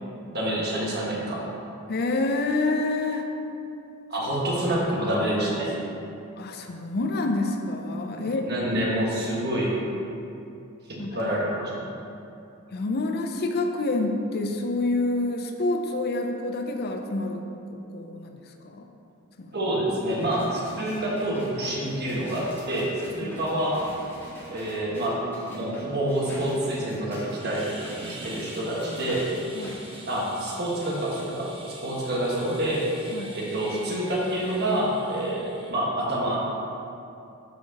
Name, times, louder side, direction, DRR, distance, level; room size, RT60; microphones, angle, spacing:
voice 1, 0.3-1.5 4.1-5.8 8.1-9.9 11.1-11.9 19.5-23.8 24.5-25.2 25.5-27.7 28.0-29.3 30.1-32.9 33.3-36.4, right 1 dB, 50° right, -4 dB, 1.5 m, -27 dB
voice 2, 1.9-3.3 6.4-8.5 11.0-11.2 12.7-17.4 17.7-18.9 19.4-19.5 23.2-23.4 29.5-29.8 33.1-33.4, left 2 dB, 45° left, 4 dB, 0.5 m, -28 dB
sound 1, 20.1-30.0 30.4-30.5, equal, 10° left, 1.7 m, -44 dB
sound 2, 27.4-35.7, right 2 dB, 25° right, 1.0 m, -45 dB
13.5 x 4.6 x 2.9 m, 2.7 s
head